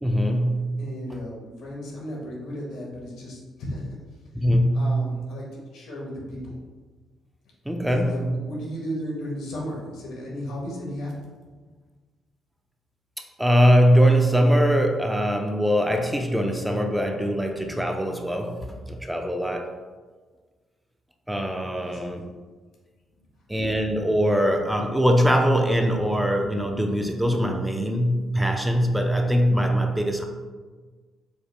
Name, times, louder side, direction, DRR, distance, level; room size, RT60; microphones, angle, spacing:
voice 1, 0.0-0.8 4.3-5.1 7.7-8.4 13.4-19.7 21.3-22.3 23.5-30.2, equal, 5° right, 3 dB, 0.4 m, -22 dB
voice 2, 0.8-4.0 4.7-5.4 5.7-6.6 7.9-11.1 21.7-22.3, equal, 85° left, -3 dB, 1.2 m, -35 dB
4.8 x 2.0 x 3.2 m, 1.4 s
cardioid pair, 90°, 0 cm